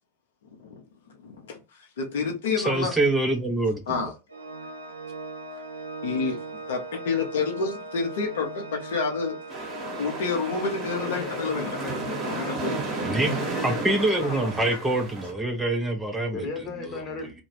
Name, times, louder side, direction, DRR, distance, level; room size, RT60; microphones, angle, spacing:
voice 1, 1.2-1.6 2.0-2.9 3.9-4.1 6.0-6.4 6.7-9.4 10.0-11.8 12.3-12.8, left 5 dB, 60° left, 0.6 m, -28 dB
voice 2, 2.6-4.1 13.0-16.4 16.9-17.0, right 2 dB, 10° right, 0.4 m, -25 dB
Organ, 4.3-15.1, right 2 dB, 75° right, 0.4 m, -39 dB
sound 1, 9.5-15.3, right 3 dB, 30° right, 0.9 m, -33 dB
voice 3, 10.9-12.6 13.2-14.6 16.3-17.3, left 4 dB, 35° left, 0.9 m, -36 dB
2.3 x 2.1 x 3.1 m
figure-of-eight pair, 90°, 0 cm